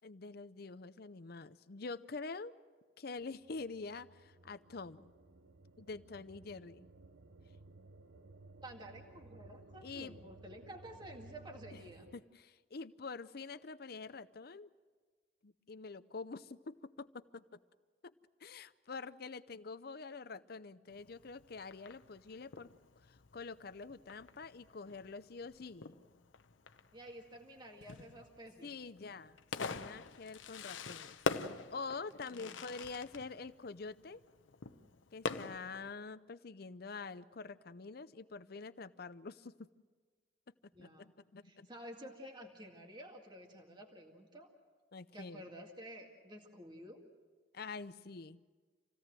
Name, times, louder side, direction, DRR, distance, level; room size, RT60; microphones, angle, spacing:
voice 1, 0.0-2.5 3.0-5.1 5.8-6.9 9.8-10.2 11.7-11.8 12.1-14.7 15.4-17.6 18.0-18.1 18.4-22.7 23.1-26.0 28.6-31.2 31.7-34.2 35.1-39.7 40.8-41.7 44.9-45.4 47.5-48.5, left 4 dB, 55° left, 14 dB, 0.6 m, -46 dB
sound 1, 3.2-12.2, right 2 dB, 70° right, 0.8 m, -58 dB
voice 2, 8.6-12.1 26.9-28.7 32.3-32.6 40.7-41.1 41.4-44.5 45.1-47.0, equal, 25° right, 2 dB, 2.0 m, -51 dB
Fireworks, 20.9-35.9, left 4 dB, 85° left, 0.9 m, -45 dB
27.0 x 17.0 x 7.6 m, 1.4 s
head